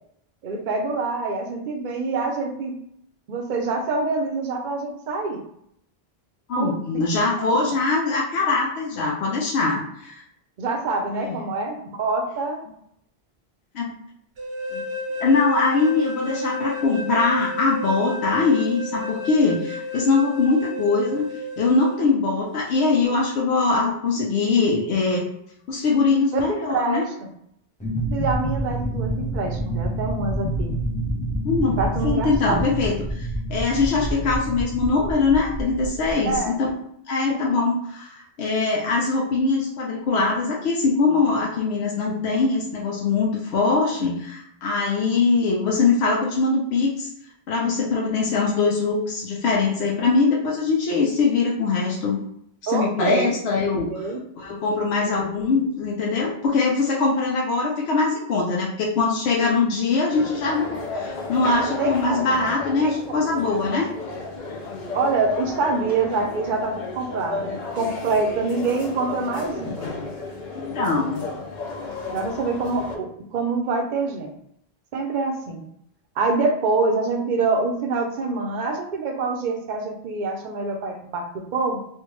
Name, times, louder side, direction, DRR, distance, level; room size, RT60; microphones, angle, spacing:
voice 1, 0.4-2.8 3.3-5.4 6.6-6.7 7.2-7.7 10.6-12.6 26.3-27.3 28.1-30.7 31.8-32.6 36.3-36.6 37.3-37.6 52.7-53.3 53.9-54.2 55.1-55.2 61.8-62.5 62.8-63.2 64.9-69.9 72.1-74.3 74.9-75.6 76.2-81.8, right 3 dB, 55° right, 3 dB, 0.7 m, -26 dB
voice 2, 6.5-10.2 11.2-11.4 13.7-13.9 14.7-14.8 15.2-21.3 21.6-25.3 25.7-27.0 31.4-31.8 32.0-36.7 37.1-47.1 47.5-52.2 52.6-54.1 54.4-63.9 70.5-71.2, left 4 dB, 90° left, -3 dB, 0.9 m, -22 dB
sound 1, 14.4-22.0, left 2 dB, 75° right, 1.0 m, -32 dB
sound 2, 27.8-36.4, right 1 dB, 10° left, 0.5 m, -28 dB
sound 3, 60.1-73.0, left 3 dB, 55° left, 0.7 m, -33 dB
3.3 x 2.2 x 3.0 m, 0.72 s
omnidirectional pair, 1.0 m